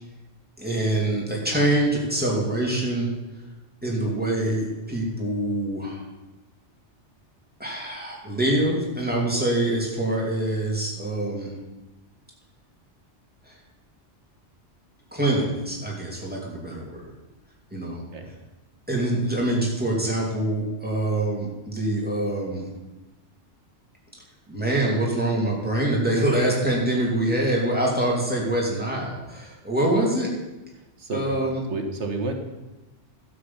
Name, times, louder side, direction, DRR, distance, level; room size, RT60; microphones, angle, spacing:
voice 1, 0.6-3.1 3.8-6.0 7.6-11.5 13.5-13.6 15.1-17.1 17.7-18.0 18.9-22.7 24.5-30.3 31.1-31.6, right 1 dB, 10° right, -3 dB, 2.7 m, -25 dB
voice 2, 30.7-32.3, right 3 dB, 70° right, 4 dB, 1.6 m, -32 dB
12.0 x 7.8 x 5.7 m, 1.1 s
omnidirectional pair, 1.2 m